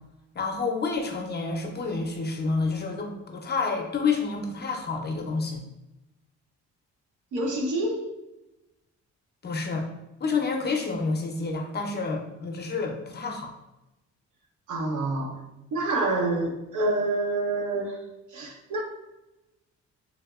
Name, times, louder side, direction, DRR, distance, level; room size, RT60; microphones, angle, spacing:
voice 1, 0.3-5.6 9.4-9.9 10.2-13.5, left 4 dB, 35° left, 3 dB, 0.6 m, -29 dB
voice 2, 7.3-8.1 14.7-15.4 15.7-18.0 18.3-18.8, right 2 dB, 80° right, 1 dB, 0.8 m, -27 dB
3.5 x 2.8 x 2.3 m, 0.97 s
cardioid pair, 90°, 30 cm